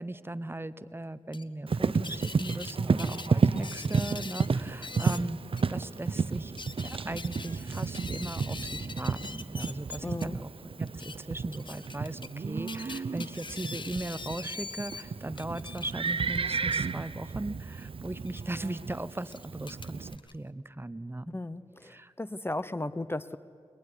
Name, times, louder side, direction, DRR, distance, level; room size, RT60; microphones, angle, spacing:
voice 1, 0.0-5.4 5.7-6.6 6.8-10.5 10.8-21.4 21.8-22.1, right 2 dB, 20° right, 15 dB, 0.9 m, -38 dB
sound 1, 1.3-1.4 2.0-2.7 3.0-4.5 4.8-5.2 5.6-5.7 6.3-10.3 10.9-11.2 11.5-12.3 12.7-15.0 15.4-16.9 18.2-18.4 19.2-20.3, left 4 dB, 45° left, 1.1 m, -42 dB
Livestock farm animals working animals, 1.7-20.2, right 5 dB, 55° right, 0.7 m, -32 dB
voice 2, 10.0-10.4 21.3-23.4, left 2 dB, 20° left, 15 dB, 0.7 m, -35 dB
22.0 x 22.0 x 9.8 m, 2.3 s
cardioid pair, 45°, 11 cm